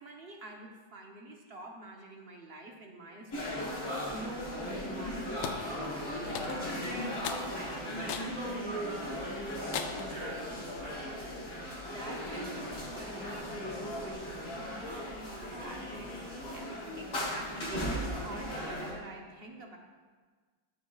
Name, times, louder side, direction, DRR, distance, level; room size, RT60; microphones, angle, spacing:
voice 1, 0.0-14.2 14.6-16.1 16.5-19.8, right 2 dB, 50° right, 1 dB, 0.8 m, -48 dB
sound 1, 3.3-18.9, equal, 60° left, 3.4 m, -37 dB
sound 2, 5.4-5.6 6.4-6.8 7.2-7.5 8.1-8.4 8.9-9.0 9.7-10.1, left 8 dB, 80° left, 1.4 m, -37 dB
14.0 x 7.5 x 2.4 m, 1.4 s
omnidirectional pair, 2.1 m